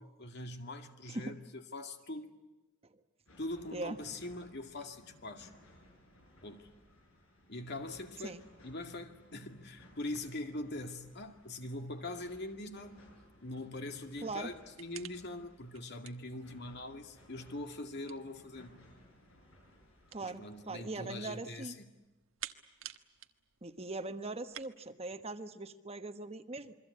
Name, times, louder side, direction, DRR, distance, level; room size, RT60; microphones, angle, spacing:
voice 1, 0.0-2.3 3.4-5.5 6.4-6.7 7.5-13.0 13.4-18.9 20.2-21.9, left 2 dB, 55° left, 2.2 m, -43 dB
sound 1, 3.3-20.8, left 1 dB, 90° left, 7.9 m, -61 dB
sound 2, 10.1-24.7, right 11 dB, 80° right, 1.4 m, -55 dB
voice 2, 20.1-21.7 23.6-26.8, right 2 dB, 30° right, 1.2 m, -41 dB
28.0 x 23.5 x 8.6 m
head